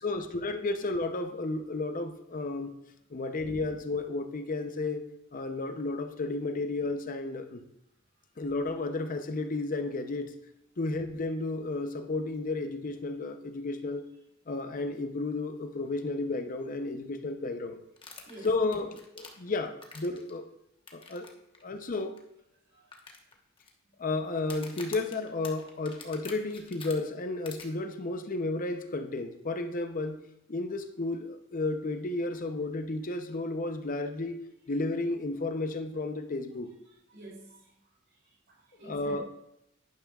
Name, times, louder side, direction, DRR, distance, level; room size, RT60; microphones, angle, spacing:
voice 1, 0.0-2.7 3.1-5.0 5.3-7.6 8.4-10.3 10.8-14.0 14.5-17.8 18.4-20.4 20.9-21.3 21.6-22.2 24.0-30.2 30.5-34.4 34.7-36.7 38.8-39.3, left 2 dB, 40° left, 7 dB, 0.6 m, -32 dB
sound 1, 18.0-20.3 20.9-21.3 21.5-21.6 22.2-22.3 22.9-23.7 24.4-26.9 27.4-27.6, left 4 dB, 25° left, 1.1 m, -46 dB
voice 2, 22.7-23.0 36.8-37.7 38.1-39.2, right 1 dB, 60° right, -3 dB, 3.9 m, -49 dB
11.0 x 10.5 x 2.4 m, 0.80 s
head